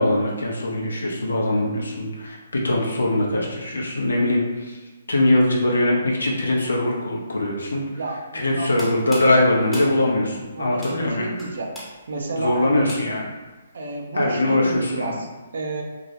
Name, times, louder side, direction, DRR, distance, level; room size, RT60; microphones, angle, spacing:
voice 1, 0.0-4.8 5.1-7.8 8.3-11.3 12.4-13.3 14.1-15.2, left 1 dB, 85° left, -3 dB, 0.5 m, -22 dB
voice 2, 8.0-8.7 10.5-11.7 12.1-12.8 13.7-15.8, right 2 dB, 65° right, 1 dB, 0.4 m, -31 dB
sound 1, 8.6-13.4, equal, ahead, 0.6 m, -40 dB
2.3 x 2.0 x 2.8 m, 1.2 s
figure-of-eight pair, 135°, 0 cm